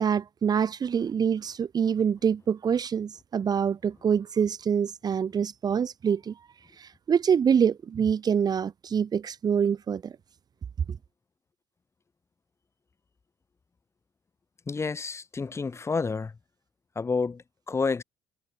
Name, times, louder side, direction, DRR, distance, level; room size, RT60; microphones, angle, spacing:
voice 1, 0.0-6.4 6.8-10.1 10.9-11.0, right 7 dB, 40° right, 1.1 m, -25 dB
voice 2, 14.7-16.4 16.9-18.0, left 4 dB, 25° left, 2.6 m, -29 dB
cardioid pair, 100°, 11 cm